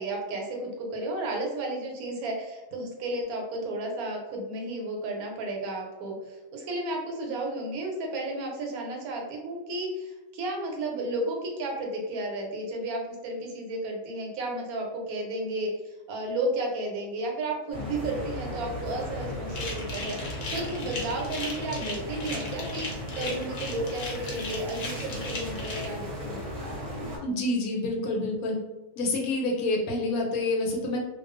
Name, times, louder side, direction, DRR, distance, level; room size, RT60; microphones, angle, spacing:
voice 1, 0.0-26.4, right 1 dB, 80° right, 0 dB, 1.1 m, -33 dB
sound 1, 17.7-27.2, equal, 35° right, 0.7 m, -36 dB
sound 2, 19.5-25.8, left 3 dB, 55° left, 0.7 m, -37 dB
voice 2, 27.2-28.5 29.0-31.0, left 2 dB, 80° left, 0 dB, 1.0 m, -27 dB
2.3 x 2.2 x 2.4 m, 1.1 s
omnidirectional pair, 1.5 m